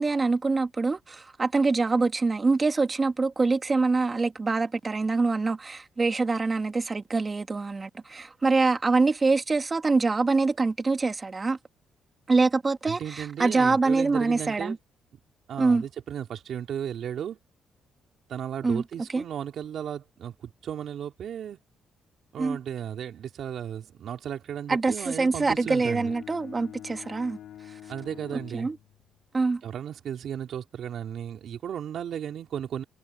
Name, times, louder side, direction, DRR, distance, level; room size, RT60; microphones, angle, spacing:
voice 1, 0.0-11.6 12.3-14.8 15.6-15.8 18.6-18.8 19.1-19.2 22.4-22.6 24.7-27.4 28.5-28.8 29.3-29.6, right 3 dB, 30° right, 2.5 m, -25 dB
voice 2, 12.9-14.8 15.5-17.4 18.3-21.6 22.3-26.1 27.9-28.7 29.6-32.8, right 9 dB, 65° right, 3.9 m, -35 dB
Bowed string instrument, 25.0-29.3, left 11 dB, 80° left, 3.1 m, -46 dB
cardioid pair, 90°, 0 cm